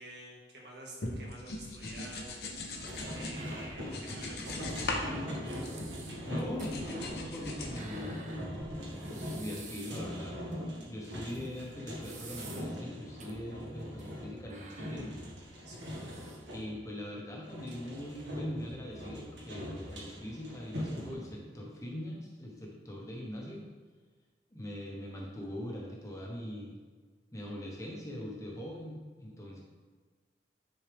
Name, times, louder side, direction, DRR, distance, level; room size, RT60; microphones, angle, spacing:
voice 1, 0.0-5.2 15.6-16.0, right 1 dB, 70° right, -2 dB, 1.8 m, -49 dB
sound 1, 1.0-3.4 3.8-5.1 5.3-6.2 6.6-7.8, left 2 dB, 60° left, 1.0 m, -39 dB
sound 2, 2.7-16.7 17.4-21.1, equal, 85° right, 1.8 m, -41 dB
sound 3, 2.9-4.0 4.3-4.4 5.1-5.2 5.5-10.1 10.5-10.6 11.3-12.8 13.2-13.3 13.8-14.2 14.5-16.6, right 3 dB, 40° right, 0.9 m, -51 dB
voice 2, 6.3-8.6 9.0-15.1 16.5-23.6 24.5-26.8 27.3-29.6, left 1 dB, 20° left, -2 dB, 1.1 m, -42 dB
10.0 x 4.5 x 3.5 m, 1.5 s
head